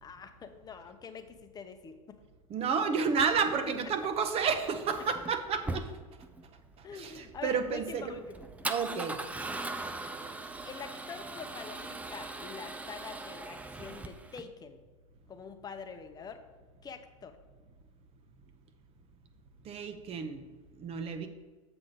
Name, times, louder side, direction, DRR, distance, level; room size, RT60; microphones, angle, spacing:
voice 1, 0.0-2.2 6.8-8.5 8.9-9.1 10.6-14.8 15.3-16.4 16.8-17.4, left 5 dB, 20° left, 7 dB, 0.8 m, -45 dB
voice 2, 2.5-5.9 6.8-8.2 8.7-9.2 19.6-20.4 20.8-21.3, right 5 dB, 35° right, 8 dB, 0.9 m, -31 dB
Male speech man speaking / Car / Engine starting, 3.3-14.4, right 2 dB, 10° right, 0.5 m, -41 dB
7.6 x 5.9 x 3.9 m, 1.3 s
hypercardioid pair, 90°, 18 cm